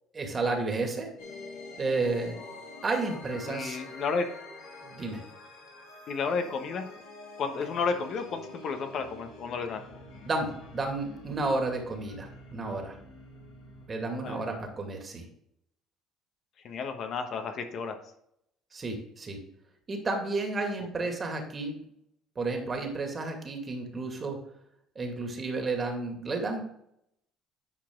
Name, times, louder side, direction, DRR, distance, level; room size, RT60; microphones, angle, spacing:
voice 1, 0.1-1.1 1.8-2.4 2.8-3.8 4.8-5.2 10.3-13.0 13.9-15.2 18.7-19.4 19.9-21.7 22.4-24.4 25.0-26.6, right 3 dB, 35° right, 3 dB, 2.2 m, -31 dB
sound 1, 1.2-13.9, left 2 dB, 80° left, 2.3 m, -47 dB
voice 2, 3.4-4.3 6.1-6.9 7.4-9.8 14.1-14.5 16.6-18.0 21.0-21.1 25.4-25.5, left 5 dB, 55° left, 6 dB, 1.2 m, -32 dB
10.0 x 4.8 x 3.8 m, 0.74 s
hypercardioid pair, 70°, 0 cm